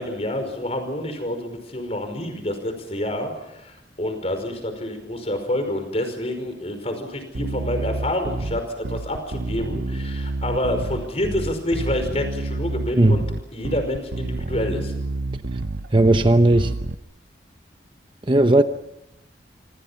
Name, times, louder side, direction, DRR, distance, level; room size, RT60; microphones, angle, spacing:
voice 1, 0.0-13.2 13.5-14.9, left 1 dB, 35° left, 7 dB, 5.2 m, -28 dB
Bass guitar, 7.3-16.9, right 2 dB, 70° right, 0.8 m, -29 dB
voice 2, 15.9-16.8 18.3-18.6, right 1 dB, 30° right, 8 dB, 0.9 m, -16 dB
27.5 x 25.5 x 5.8 m, 0.85 s
head